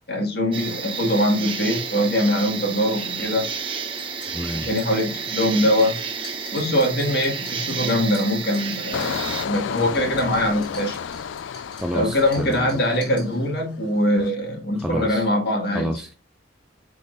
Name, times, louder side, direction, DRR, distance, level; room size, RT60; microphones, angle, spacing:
voice 1, 0.1-3.5 4.5-6.0 6.5-11.0 11.9-15.9, left 1 dB, 55° left, 1.9 m, -22 dB
sound 1, 0.5-9.5, right 6 dB, 25° right, 0.8 m, -31 dB
sound 2, 3.8-13.8, left 1 dB, 30° left, 3.0 m, -46 dB
voice 2, 4.3-4.7 5.6-5.7 11.8-12.7 14.8-15.3 15.7-16.2, equal, 5° right, 0.4 m, -29 dB
Engine, 8.9-13.6 14.0-14.3, left 7 dB, 75° left, 0.4 m, -32 dB
10.5 x 3.9 x 2.6 m
head